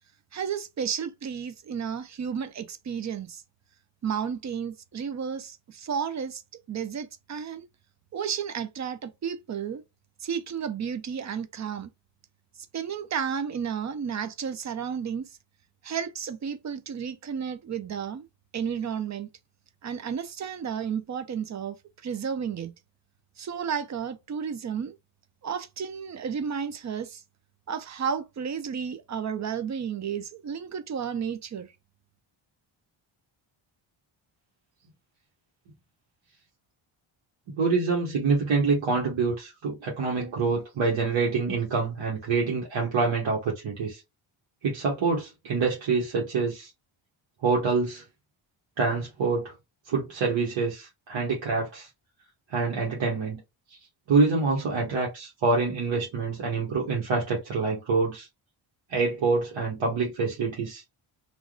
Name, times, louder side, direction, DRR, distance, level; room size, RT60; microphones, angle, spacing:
voice 1, 0.3-3.4 4.0-6.4 6.7-7.7 8.1-9.8 10.2-11.9 12.7-15.3 15.8-18.3 18.5-19.3 19.8-21.8 22.0-22.7 23.4-24.9 25.4-27.2 27.7-31.7, right 7 dB, 35° right, 0.5 m, -32 dB
voice 2, 37.5-44.0 44.6-46.7 47.4-48.0 48.8-49.5 49.9-51.9 52.5-53.4 54.1-58.3 58.9-60.8, right 4 dB, 65° right, 1.3 m, -26 dB
3.4 x 2.5 x 2.3 m
cardioid pair, 125°, 50 cm